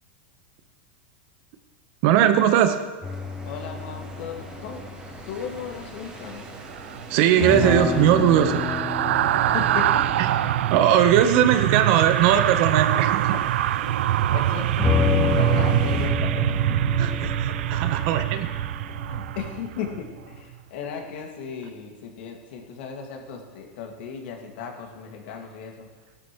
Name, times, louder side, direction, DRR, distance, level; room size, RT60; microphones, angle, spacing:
voice 1, 2.0-2.8 7.1-8.6 10.2-10.3 10.7-13.3 17.0-18.5, right 10 dB, 50° right, 8 dB, 1.0 m, -19 dB
sound 1, 3.0-5.5 7.4-11.9 14.8-20.2, left 5 dB, 15° left, 0.6 m, -30 dB
sound 2, 3.0-16.1, right 2 dB, 15° right, 2.8 m, -42 dB
voice 2, 3.4-4.8 5.3-6.4 9.0-10.1 10.4-10.5 14.3-14.9 15.2-16.6 17.0-17.6 19.1-25.9, left 6 dB, 65° left, 2 dB, 2.1 m, -36 dB
sound 3, 6.7-20.0 20.3-20.5, right 13 dB, 85° right, 0.3 m, -24 dB
16.0 x 12.0 x 3.1 m, 1.3 s
supercardioid pair, 150°, 6 cm